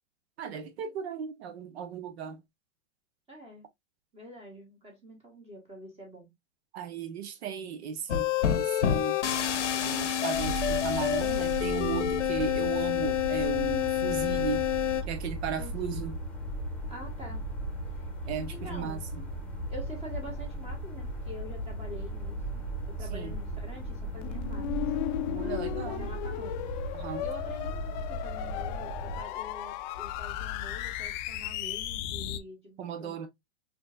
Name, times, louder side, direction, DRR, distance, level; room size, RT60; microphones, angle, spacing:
voice 1, 0.4-2.4 6.7-8.3 8.6-9.2 9.8-14.6 15.1-16.2 18.3-19.2 23.1-23.3 25.3-26.1 26.9-27.2 32.8-33.3, right 7 dB, 65° right, 1.0 m, -36 dB
voice 2, 3.3-3.7 4.1-6.3 15.6-16.1 16.9-17.5 17.9-18.1 18.5-19.0 19.7-24.7 25.7-26.6 27.2-33.3, equal, 15° right, 1.4 m, -46 dB
sound 1, 8.1-15.0, left 10 dB, 90° left, 0.8 m, -28 dB
sound 2, 10.3-29.2, right 1 dB, 5° left, 1.1 m, -37 dB
sound 3, 24.2-32.4, left 14 dB, 40° left, 0.4 m, -35 dB
4.2 x 2.9 x 2.4 m
hypercardioid pair, 115°, 35 cm